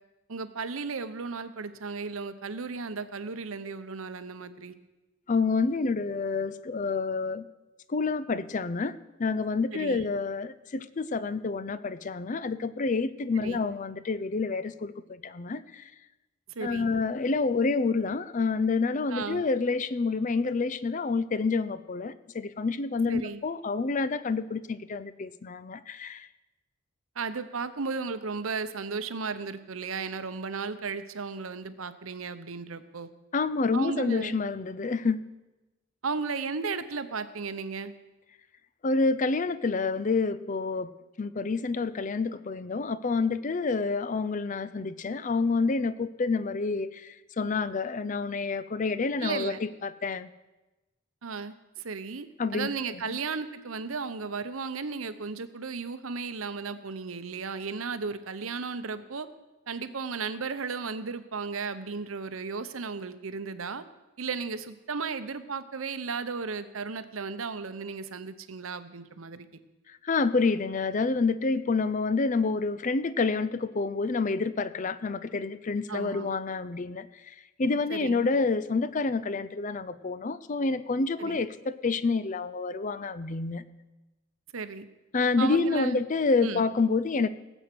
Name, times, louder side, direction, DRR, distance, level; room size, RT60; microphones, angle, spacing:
voice 1, 0.3-4.8 9.7-10.0 13.4-13.6 16.5-16.9 19.1-19.4 23.1-23.4 27.2-33.1 33.7-34.4 36.0-37.9 49.2-49.6 51.2-59.3 59.7-63.8 64.2-69.5 75.9-76.3 77.9-78.3 81.2-81.4 84.5-84.9 85.4-86.0 86.4-86.6, right 4 dB, 85° right, 12 dB, 0.9 m, -35 dB
voice 2, 5.3-7.5 7.9-15.9 16.6-26.3 33.3-35.3 38.8-40.9 41.2-50.3 52.4-52.7 52.9-53.2 69.9-83.6 85.1-87.3, left 4 dB, 40° left, 14 dB, 0.5 m, -28 dB
18.0 x 8.1 x 6.0 m, 1.1 s
head